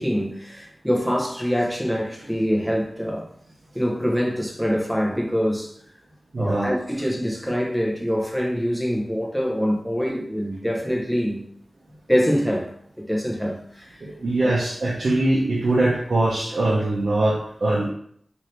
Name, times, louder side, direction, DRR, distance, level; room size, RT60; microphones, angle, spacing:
voice 1, 0.0-3.3 3.7-5.7 6.4-11.4 12.1-12.7 13.1-14.0 14.4-14.5, equal, ahead, -2 dB, 0.7 m, -24 dB
voice 2, 6.3-6.7 14.0-17.9, right 2 dB, 70° right, -5 dB, 0.6 m, -22 dB
2.8 x 2.6 x 3.2 m, 0.65 s
wide cardioid pair, 65°, 0 cm